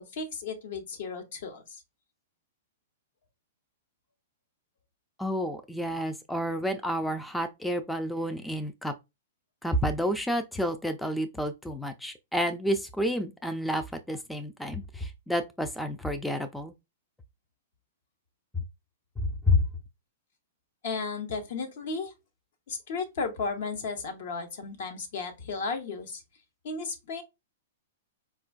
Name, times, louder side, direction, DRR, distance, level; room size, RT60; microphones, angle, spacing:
voice 1, 0.0-1.6 20.8-22.1 22.7-26.2 26.6-27.2, left 4 dB, 65° left, 1.0 m, -34 dB
voice 2, 5.2-8.9 9.6-16.7 19.2-19.6, left 1 dB, 5° left, 0.3 m, -30 dB
4.3 x 2.3 x 2.3 m
hypercardioid pair, 135°, 0 cm